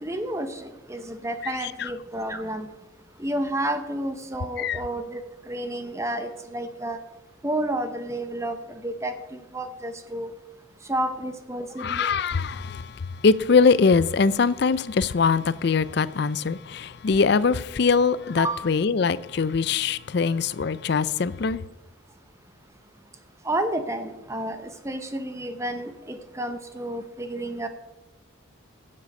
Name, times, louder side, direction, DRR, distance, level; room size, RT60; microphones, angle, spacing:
voice 1, 0.0-2.7 3.2-5.2 5.5-7.0 7.4-8.6 8.8-10.3 10.9-12.1 18.4-18.6 23.4-27.7, right 1 dB, 15° right, 0.7 m, -30 dB
voice 2, 11.8-21.6, left 5 dB, 55° left, 0.4 m, -22 dB
16.0 x 7.6 x 5.3 m
head